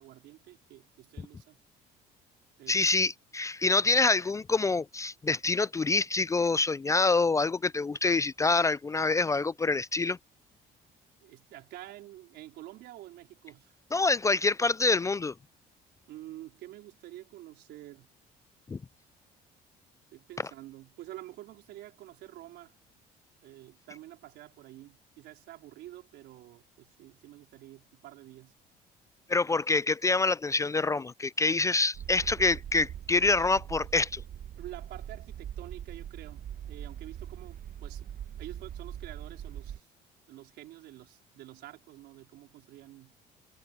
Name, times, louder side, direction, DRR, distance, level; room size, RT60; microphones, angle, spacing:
voice 1, 0.0-1.6 2.6-2.8 11.2-13.8 16.1-18.1 20.1-22.8 23.4-28.5 34.6-38.1 38.4-39.9 40.3-43.1, right 15 dB, 80° right, 4.5 m, -48 dB
voice 2, 2.7-10.2 13.9-15.3 18.7-18.8 29.3-34.2, left 3 dB, 20° left, 0.3 m, -26 dB
sound 1, 31.9-39.8, right 10 dB, 55° right, 1.3 m, -42 dB
cardioid pair, 110°, 17 cm